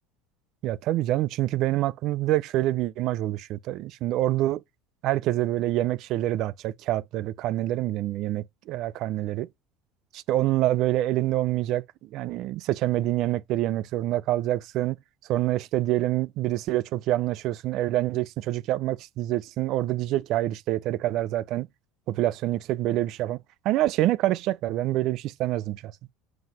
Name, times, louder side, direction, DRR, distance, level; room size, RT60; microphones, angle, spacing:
voice 1, 0.6-4.6 5.0-9.5 10.1-11.8 12.1-15.0 15.3-21.7 22.1-23.4 23.6-25.9, right 15 dB, 50° right, 0.4 m, -26 dB
7.7 x 2.9 x 5.3 m
cardioid pair, 155°, 0 cm